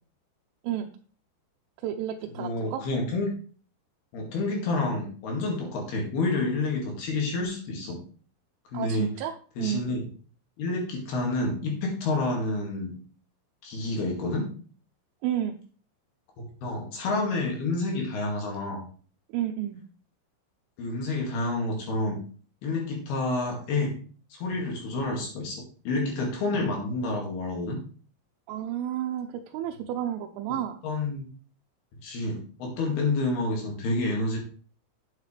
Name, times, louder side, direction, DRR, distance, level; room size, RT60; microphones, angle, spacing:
voice 1, 1.8-2.8 8.7-9.9 15.2-15.6 19.3-19.8 28.5-30.8, right 11 dB, 80° right, 3 dB, 3.1 m, -31 dB
voice 2, 2.4-3.3 4.1-8.0 8.7-9.1 9.6-10.0 10.6-12.9 13.6-14.5 16.4-18.8 20.8-22.2 22.6-24.0 24.3-27.8 30.8-31.3 32.0-34.4, left 2 dB, 60° left, 0 dB, 3.6 m, -29 dB
9.3 x 8.2 x 3.3 m, 0.42 s
omnidirectional pair, 5.9 m